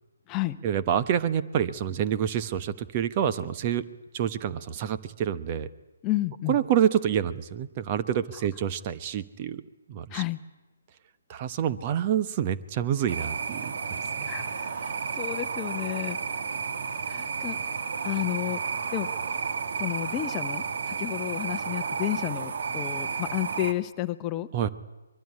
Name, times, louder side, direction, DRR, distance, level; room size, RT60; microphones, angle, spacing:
voice 1, 0.6-3.8 4.1-5.7 6.5-9.6 9.9-10.2 11.3-14.3 24.5-24.7, right 9 dB, 30° right, 11 dB, 1.1 m, -27 dB
voice 2, 6.0-6.6 10.1-10.4 14.2-16.2 17.1-18.6 18.9-19.1 19.8-24.5, left 15 dB, 20° left, 10 dB, 1.0 m, -31 dB
sound 1, 13.1-23.7, right 5 dB, 55° right, 1.7 m, -32 dB
23.5 x 22.5 x 9.9 m, 1.1 s
figure-of-eight pair, 140°, 0 cm